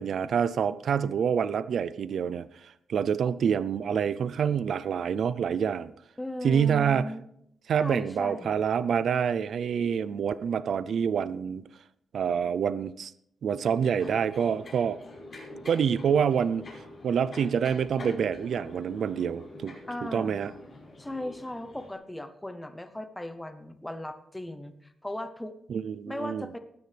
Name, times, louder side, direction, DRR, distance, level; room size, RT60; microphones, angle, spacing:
voice 1, 0.0-5.9 6.4-7.0 7.7-11.6 12.1-13.1 13.4-15.0 15.7-16.6 17.0-19.8 20.1-20.5 25.7-26.5, right 7 dB, 60° right, 16 dB, 0.4 m, -27 dB
voice 2, 6.2-7.2 7.8-8.6 19.9-20.4 21.0-25.6 26.1-26.6, left 1 dB, 10° left, 9 dB, 0.7 m, -37 dB
sound 1, 14.0-21.9, left 2 dB, 40° left, 5.9 m, -46 dB
20.5 x 9.5 x 3.4 m, 0.74 s
wide cardioid pair, 170°, 0 cm